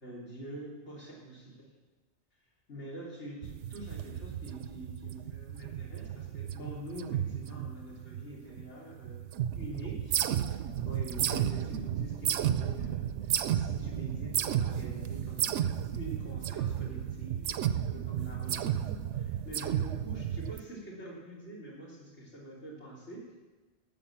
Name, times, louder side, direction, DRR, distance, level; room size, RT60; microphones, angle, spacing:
voice 1, 0.0-1.6 2.7-10.2 10.5-15.7 15.9-23.2, right 1 dB, 85° left, -5 dB, 3.8 m, -45 dB
sound 1, 3.4-8.7 8.9-20.6, right 10 dB, 85° right, 0.9 m, -33 dB
11.0 x 8.1 x 7.4 m, 1.2 s
omnidirectional pair, 1.2 m